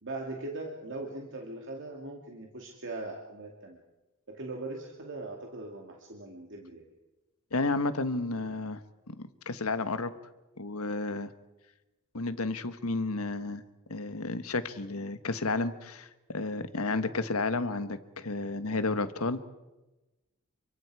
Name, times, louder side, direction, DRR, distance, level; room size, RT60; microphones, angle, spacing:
voice 1, 0.0-3.8 4.3-6.9, right 2 dB, 60° right, 0 dB, 2.4 m, -40 dB
voice 2, 7.5-8.8 9.1-9.2 9.4-10.1 10.6-11.3 12.1-13.6 13.9-16.1 16.3-19.4, left 3 dB, 85° left, 11 dB, 1.3 m, -31 dB
28.5 x 24.0 x 4.9 m, 1.1 s
head